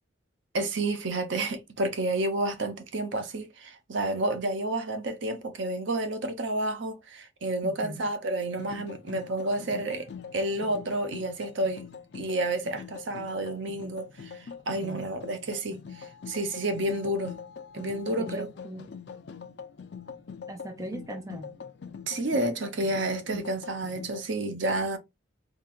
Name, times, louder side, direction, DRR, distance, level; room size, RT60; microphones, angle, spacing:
voice 1, 0.5-11.9 12.1-17.4 17.7-18.5 22.1-25.0, right 1 dB, 65° right, 0.7 m, -30 dB
voice 2, 7.6-8.1 14.8-15.1 18.2-18.9 20.5-21.5, right 1 dB, 15° right, 0.4 m, -39 dB
sound 1, 8.4-24.3, left 6 dB, 55° left, 0.4 m, -43 dB
3.9 x 2.9 x 2.3 m
head